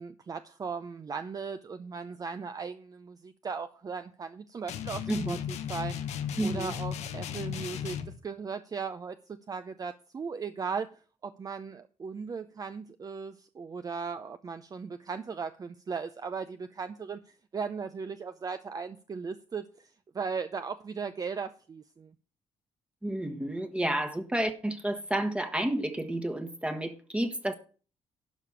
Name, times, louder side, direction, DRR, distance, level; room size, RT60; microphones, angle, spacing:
voice 1, 0.0-6.1 6.4-8.0 8.2-9.2 9.5-10.9 11.2-22.1, right 5 dB, 35° right, 0.6 m, -37 dB
sound 1, 4.7-8.2, left 9 dB, 80° left, 1.2 m, -35 dB
voice 2, 6.4-6.7 23.0-27.5, right 1 dB, 10° right, 1.2 m, -31 dB
11.5 x 5.0 x 7.1 m
cardioid pair, 100°, 11 cm